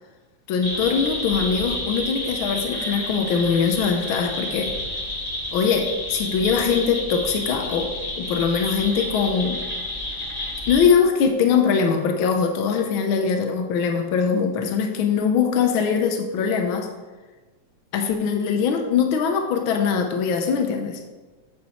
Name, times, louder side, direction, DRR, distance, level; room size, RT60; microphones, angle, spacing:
voice 1, 0.5-4.7 5.5-9.6 10.7-16.9 17.9-21.0, left 6 dB, 85° left, 4 dB, 1.1 m, -22 dB
sound 1, 0.6-10.9, left 1 dB, 20° left, 1.0 m, -30 dB
8.8 x 8.3 x 4.2 m, 1.3 s
omnidirectional pair, 3.3 m